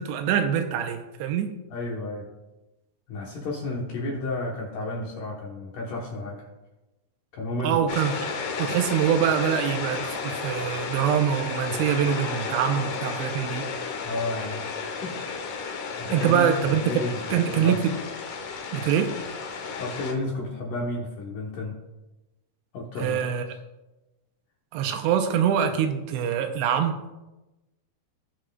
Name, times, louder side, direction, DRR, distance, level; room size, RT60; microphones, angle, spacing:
voice 1, 0.0-1.5 7.6-8.3 8.6-13.6 16.1-16.8 17.3-17.9 18.7-19.1 23.0-23.4 24.7-27.0, right 8 dB, 85° right, 6 dB, 2.8 m, -24 dB
voice 2, 1.7-2.3 3.1-6.5 7.3-7.8 14.0-14.7 15.0-15.2 16.0-17.2 17.5-17.8 19.8-21.8 22.7-23.4, left 2 dB, 65° left, -2 dB, 2.2 m, -32 dB
sound 1, 7.9-20.1, left 5 dB, 85° left, 1.7 m, -33 dB
18.5 x 6.3 x 2.4 m, 1.0 s
omnidirectional pair, 5.1 m